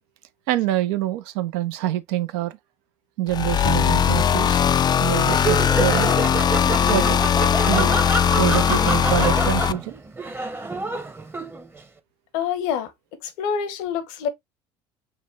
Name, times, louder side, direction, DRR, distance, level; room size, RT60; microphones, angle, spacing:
voice 1, 0.5-2.6 3.2-4.6 5.0-6.1 6.9-7.2 7.7-7.9 8.4-10.0, right 13 dB, 75° right, 0.6 m, -25 dB
sound 1, 3.3-9.7, left 8 dB, 30° left, 0.3 m, -19 dB
Laughter, 5.2-11.8, right 3 dB, 15° right, 0.8 m, -28 dB
voice 2, 12.3-12.9 13.2-14.3, left 7 dB, 75° left, 0.9 m, -26 dB
5.6 x 2.1 x 3.2 m
hypercardioid pair, 70°, 14 cm